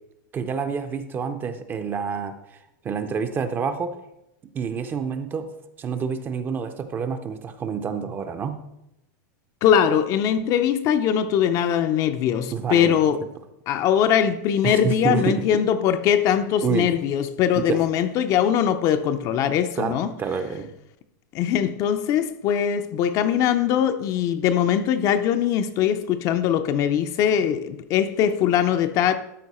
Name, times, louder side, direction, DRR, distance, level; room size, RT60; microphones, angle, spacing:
voice 1, 0.3-2.3 2.8-4.0 4.5-5.5 5.8-8.7 12.5-13.0 14.6-15.5 16.6-16.9 17.6-17.8 19.8-20.7, right 6 dB, 20° right, 0.5 m, -28 dB
voice 2, 9.6-13.2 13.7-20.1 21.3-29.1, left 9 dB, 35° left, 0.5 m, -21 dB
12.5 x 4.4 x 4.2 m
supercardioid pair, 150°, 10 cm